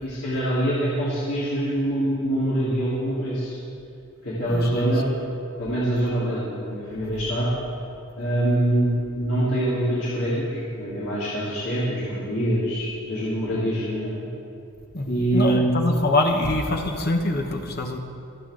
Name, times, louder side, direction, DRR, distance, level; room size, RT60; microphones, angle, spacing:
voice 1, 0.0-3.5 4.2-5.1 5.6-7.5 8.2-14.3 15.1-15.9, right 1 dB, 80° left, -11 dB, 3.7 m, -24 dB
voice 2, 4.5-4.9 14.9-18.0, left 2 dB, 45° left, 3 dB, 1.1 m, -24 dB
26.5 x 9.1 x 3.9 m, 2.6 s
head